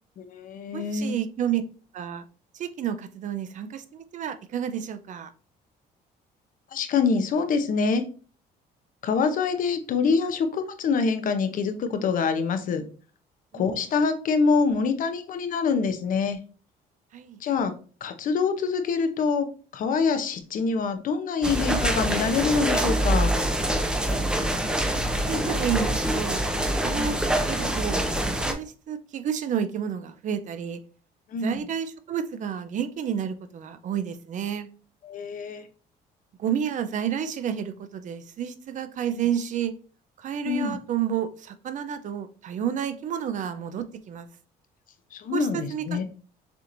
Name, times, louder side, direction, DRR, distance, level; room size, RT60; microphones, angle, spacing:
voice 1, 0.2-1.2 6.7-8.0 9.0-12.8 13.5-16.4 17.4-17.7 18.0-19.5 19.7-23.3 26.9-27.2 31.3-31.6 35.0-35.6 40.4-40.8 45.1-46.0, left 5 dB, 55° left, 9 dB, 0.7 m, -25 dB
voice 2, 0.7-1.6 1.9-2.2 2.5-5.3 13.5-13.8 17.1-17.4 24.8-30.8 31.4-34.7 36.4-39.7 40.2-44.3 45.3-46.0, right 8 dB, 50° right, 11 dB, 0.5 m, -30 dB
sound 1, 21.4-28.5, right 1 dB, 5° right, 0.6 m, -25 dB
6.8 x 2.9 x 2.5 m, 0.39 s
cardioid pair, 110°, 17 cm